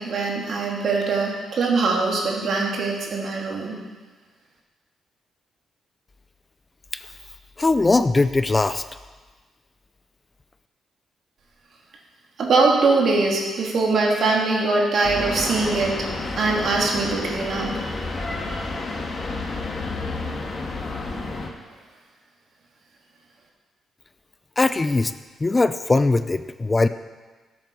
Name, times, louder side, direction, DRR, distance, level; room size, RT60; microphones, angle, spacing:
voice 1, 0.0-3.8 12.4-16.0 16.3-18.0 18.5-18.6, right 3 dB, 60° right, -1 dB, 2.7 m, -22 dB
voice 2, 7.6-8.8 24.6-25.1 25.4-26.9, left 3 dB, 20° left, 12 dB, 0.4 m, -20 dB
sound 1, 15.0-21.5, left 3 dB, 40° left, 1.8 m, -30 dB
13.0 x 8.0 x 5.5 m, 1.3 s
cardioid pair, 95°, 0 cm